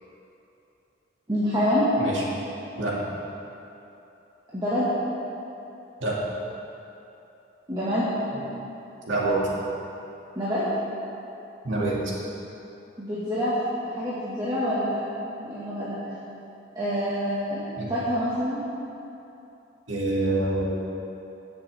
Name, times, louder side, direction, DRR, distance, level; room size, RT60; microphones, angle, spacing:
voice 1, 1.3-1.9 4.5-4.9 7.7-8.1 10.4-10.6 13.0-13.5 13.8-15.0 15.4-16.0 16.8-17.6 17.9-18.6, equal, 20° right, -10 dB, 1.7 m, -26 dB
voice 2, 2.8-3.1 6.0-6.2 9.1-9.6 11.6-12.0 17.8-17.9 19.9-20.7, right 2 dB, 90° right, -5 dB, 2.3 m, -26 dB
16.5 x 7.0 x 3.5 m, 2.9 s
head